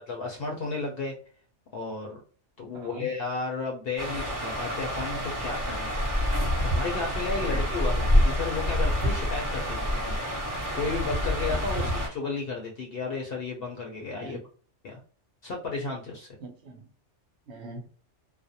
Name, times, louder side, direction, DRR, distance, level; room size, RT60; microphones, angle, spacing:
voice 1, 0.1-1.2 1.7-2.2 2.6-5.9 6.6-10.2 10.7-14.4 14.8-15.0 15.4-16.3, left 4 dB, 60° left, 0 dB, 0.7 m, -33 dB
voice 2, 2.7-3.1 7.4-7.7 11.8-11.9 14.1-14.4 16.4-16.9 17.5-17.9, right 1 dB, 65° right, 3 dB, 0.9 m, -42 dB
sound 1, 4.0-12.1, equal, 15° right, 0.9 m, -27 dB
2.4 x 2.1 x 2.7 m, 0.42 s
omnidirectional pair, 1.3 m